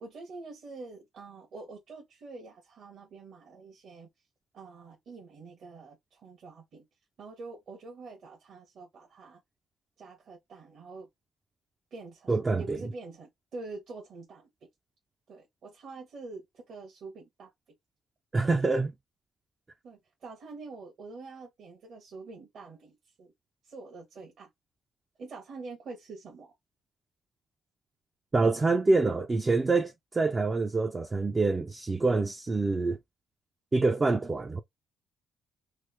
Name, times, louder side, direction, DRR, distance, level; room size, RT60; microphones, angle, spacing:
voice 1, 0.0-4.1 4.5-6.8 7.2-9.4 10.0-11.1 11.9-14.5 15.3-17.5 19.8-23.3 23.6-24.5 25.2-26.5, right 3 dB, 60° right, 1.1 m, -46 dB
voice 2, 12.3-12.8 18.3-18.9 28.3-33.0 33.7-34.6, right 3 dB, 25° right, 0.4 m, -26 dB
3.1 x 2.0 x 3.3 m
cardioid pair, 90°, 0 cm